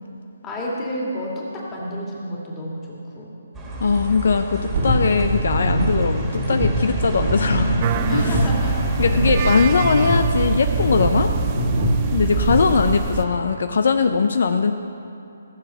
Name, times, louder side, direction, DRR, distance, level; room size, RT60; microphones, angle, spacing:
voice 1, 0.4-3.3 7.5-8.8 12.2-12.3 12.6-12.8, equal, 15° left, -4 dB, 2.3 m, -30 dB
sound 1, 3.5-13.4, right 1 dB, 15° right, 1.9 m, -31 dB
voice 2, 3.8-8.4 9.0-11.3 12.1-14.7, left 5 dB, 65° left, 8 dB, 0.5 m, -20 dB
sound 2, 4.7-12.6, right 1 dB, 50° right, 1.8 m, -23 dB
sound 3, 7.8-13.3, right 10 dB, 30° right, 0.3 m, -28 dB
15.5 x 7.2 x 5.7 m, 2.7 s
hypercardioid pair, 155°, 0 cm